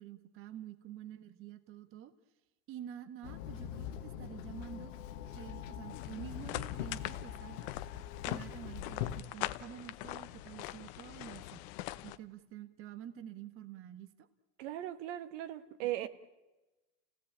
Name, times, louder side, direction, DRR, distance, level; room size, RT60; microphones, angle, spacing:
voice 1, 0.0-2.1 2.7-4.9 5.3-7.7 8.2-11.6 12.0-14.3 15.8-16.1, right 10 dB, 35° right, 10 dB, 1.3 m, -48 dB
Walk footsteps / Chatter / Hiss, 3.2-9.2, left 10 dB, 80° left, 1.5 m, -42 dB
sound 1, 5.8-12.2, left 16 dB, 55° left, 1.0 m, -43 dB
voice 2, 14.6-16.1, right 13 dB, 65° right, 10 dB, 1.5 m, -38 dB
29.5 x 17.0 x 8.7 m, 1.1 s
supercardioid pair, 145°, 38 cm